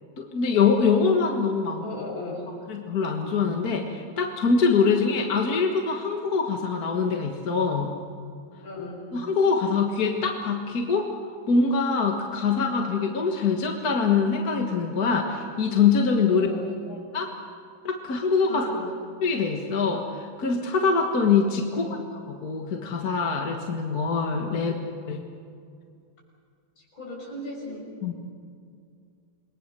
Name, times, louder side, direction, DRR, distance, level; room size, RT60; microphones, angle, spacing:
voice 1, 0.2-1.8 2.7-7.9 9.1-11.1 11.5-16.5 17.1-17.3 17.8-18.6 19.2-21.9 22.3-24.7 25.1-25.2 28.0-28.1, left 5 dB, 50° left, 2 dB, 2.0 m, -24 dB
voice 2, 1.8-2.5 8.6-9.0 16.3-17.0 18.5-18.9 21.7-22.0 24.5-24.8 26.8-27.9, left 2 dB, 80° left, -1 dB, 6.8 m, -36 dB
28.5 x 21.5 x 6.8 m, 2.3 s
omnidirectional pair, 2.1 m